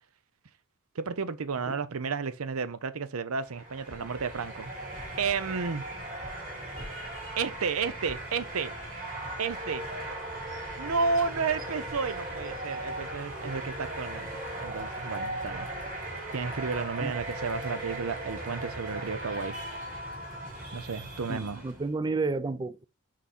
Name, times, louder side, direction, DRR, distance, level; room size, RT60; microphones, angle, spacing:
voice 1, 1.0-4.7 5.2-5.9 7.4-8.7 9.4-9.9 10.8-15.7 16.3-19.6 20.7-21.6, right 5 dB, 85° right, 0.7 m, -32 dB
sound 1, 3.4-21.9, right 1 dB, 40° right, 3.2 m, -38 dB
voice 2, 21.3-22.8, right 3 dB, 20° right, 0.3 m, -31 dB
5.9 x 4.1 x 4.2 m
head